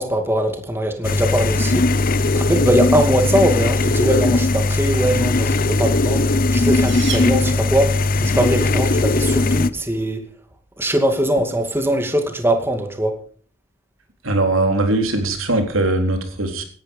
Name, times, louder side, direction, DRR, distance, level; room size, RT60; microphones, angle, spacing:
voice 1, 0.0-1.8 2.4-10.2 10.8-13.1, right 1 dB, 10° right, 5 dB, 2.4 m, -21 dB
sound 1, 1.0-9.7, left 2 dB, 45° left, 0.7 m, -18 dB
sound 2, 6.4-8.1, right 7 dB, 60° right, 3.2 m, -34 dB
voice 2, 14.2-16.6, right 2 dB, 90° right, 5 dB, 3.8 m, -20 dB
17.0 x 12.0 x 5.4 m, 0.44 s
head